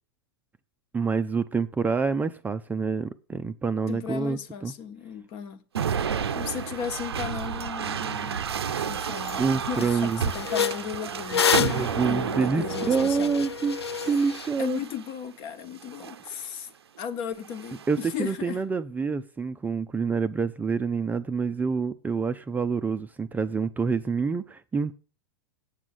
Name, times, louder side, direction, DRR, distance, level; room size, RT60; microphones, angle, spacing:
voice 1, 0.9-4.7 9.4-10.3 11.6-13.8 14.0-14.8 17.9-24.9, right 5 dB, 10° right, 0.5 m, -27 dB
voice 2, 3.9-5.6 6.2-8.4 8.8-13.3 14.6-16.7 17.0-18.6, left 8 dB, 45° left, 1.2 m, -35 dB
sound 1, 5.7-15.1 15.8-16.3 17.4-18.1, right 7 dB, 80° right, 0.6 m, -32 dB
sound 2, 8.7-8.8 9.2-9.4 9.7-14.5, left 7 dB, 90° left, 0.4 m, -29 dB
8.3 x 6.1 x 7.7 m
hypercardioid pair, 105°, 13 cm